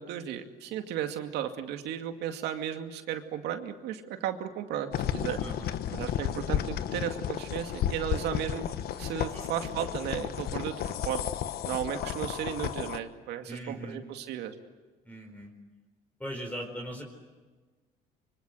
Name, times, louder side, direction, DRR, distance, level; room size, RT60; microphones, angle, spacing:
voice 1, 0.0-5.4 5.9-8.7 9.0-10.7 11.0-11.2 11.6-14.5, right 10 dB, 80° right, 6 dB, 2.3 m, -34 dB
sound 1, 4.9-13.0, left 10 dB, 65° left, 1.3 m, -33 dB
voice 2, 5.4-5.7 9.3-9.4 13.5-14.0 15.0-15.5 16.2-17.0, equal, 10° left, 1 dB, 4.5 m, -39 dB
25.5 x 24.5 x 7.9 m, 1.3 s
cardioid pair, 110°, 17 cm